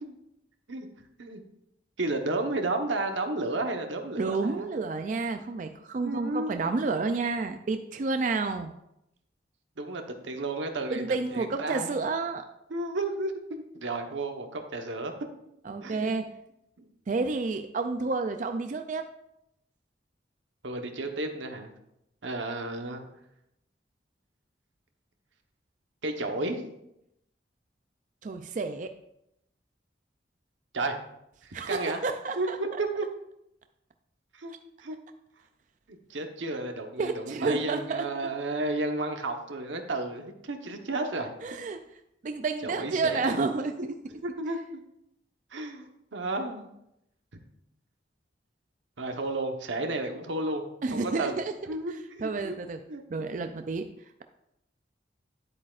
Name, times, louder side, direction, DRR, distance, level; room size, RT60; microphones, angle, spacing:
voice 1, 2.0-4.7 6.0-6.7 9.8-11.9 12.7-15.1 15.8-16.1 16.8-16.9 20.6-21.7 22.2-23.0 26.0-26.6 30.7-30.9 31.4-32.0 32.4-33.1 34.3-34.5 34.8-35.0 35.9-41.3 42.6-43.4 43.8-44.8 45.5-46.7 49.0-50.6 50.9-51.4 51.7-52.5 52.9-53.0, right 2 dB, 90° right, 5 dB, 1.1 m, -32 dB
voice 2, 4.2-8.7 10.9-12.5 15.6-16.2 17.1-19.1 28.2-28.9 31.5-32.6 37.0-38.0 41.4-41.8 42.2-43.9 50.8-51.5 52.2-52.8 53.1-53.9, right 3 dB, 45° right, 7 dB, 0.4 m, -30 dB
9.9 x 8.3 x 2.4 m, 0.82 s
head